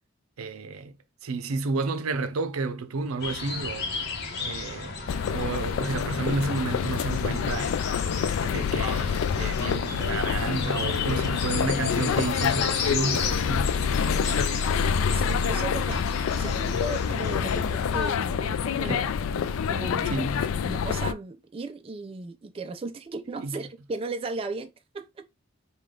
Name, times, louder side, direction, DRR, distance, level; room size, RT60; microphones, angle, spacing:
voice 1, 0.4-0.9 1.2-3.9 4.4-5.0 5.3-7.9 8.4-13.7 18.8-19.1 20.0-20.5 23.4-23.6, right 4 dB, 90° right, 0.5 m, -31 dB
sound 1, 3.2-18.1, left 4 dB, 50° left, 0.9 m, -35 dB
sound 2, 5.1-21.1, left 7 dB, 75° left, 0.3 m, -27 dB
voice 2, 11.1-11.5 15.1-19.1 19.3-20.2 20.6-25.3, right 3 dB, 25° right, 0.3 m, -36 dB
5.0 x 2.3 x 3.6 m
head